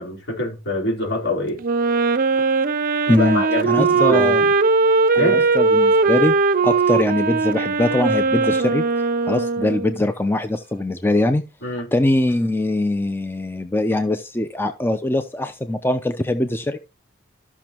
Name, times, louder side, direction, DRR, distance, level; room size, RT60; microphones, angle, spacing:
voice 1, 0.0-1.6 3.1-4.5 5.2-5.4 11.6-11.9, left 1 dB, 60° left, 4.3 m, -25 dB
Wind instrument woodwind instrument, 1.6-10.0, right 4 dB, 45° right, 0.6 m, -19 dB
voice 2, 3.1-4.4 5.2-6.4 6.6-8.9 9.3-11.4 11.9-16.8, left 1 dB, 10° left, 0.6 m, -22 dB
14.0 x 6.1 x 3.0 m
head